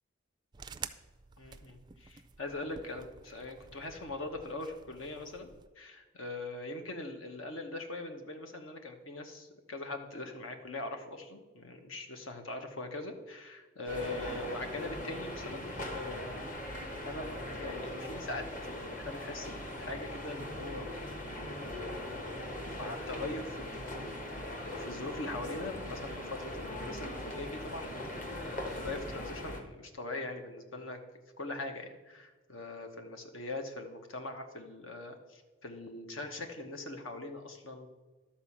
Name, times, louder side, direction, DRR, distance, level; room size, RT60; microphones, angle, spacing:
sound 1, 0.5-5.7, right 6 dB, 20° right, 0.3 m, -50 dB
voice 1, 1.4-20.9 21.6-27.9 28.4-31.0 31.4-37.9, left 2 dB, 75° left, 5 dB, 1.2 m, -42 dB
sound 2, 13.9-29.6, left 1 dB, 40° left, 1.2 m, -40 dB
12.0 x 4.3 x 7.2 m, 1.3 s
head